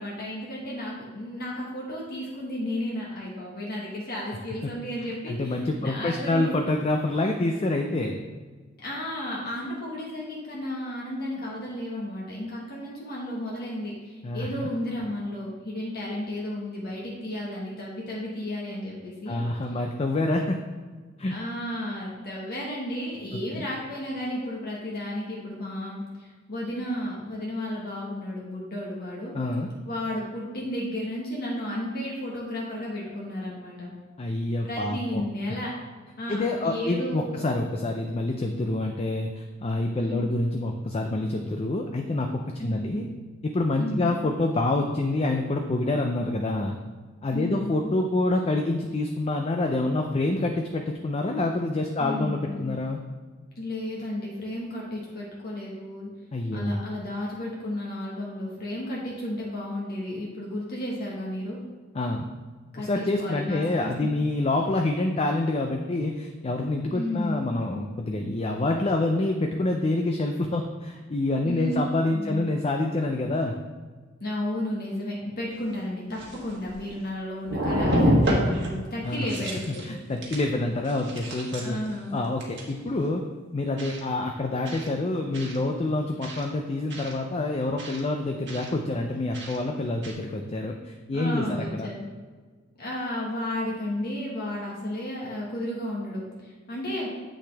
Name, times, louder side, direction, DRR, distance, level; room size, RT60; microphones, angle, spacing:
voice 1, 0.0-6.6 8.8-19.4 19.7-19.8 21.3-29.4 29.8-33.9 34.7-35.7 36.2-37.4 40.0-40.3 42.6-43.0 43.8-44.2 47.3-47.8 52.0-52.8 53.5-56.1 56.5-61.6 62.7-64.1 66.9-67.4 71.4-71.8 72.1-72.4 74.2-79.9 81.6-82.2 91.1-92.1 92.8-97.1, left 1 dB, 50° left, -4 dB, 1.4 m, -33 dB
voice 2, 5.3-8.2 14.2-14.7 19.3-20.6 21.2-21.4 23.5-23.7 29.3-29.7 34.2-35.2 36.3-39.3 39.6-43.0 43.4-46.8 47.2-53.0 56.3-56.8 61.9-62.3 62.8-73.6 79.0-79.3 79.7-81.8 82.1-83.2 83.5-91.9, left 2 dB, 30° left, 3 dB, 0.5 m, -27 dB
sound 1, 75.6-75.7 76.1-77.1 77.4-78.7 79.1-79.9 80.2-80.5 80.8-81.9 82.4-82.7 83.8-84.0 84.7-84.9 85.3-85.6 86.2-86.4 86.9-87.1 87.8-88.0 88.5-88.7 89.3-89.6 90.0-90.1, equal, 65° right, 1.5 m, -27 dB
8.0 x 6.2 x 3.4 m, 1.4 s
head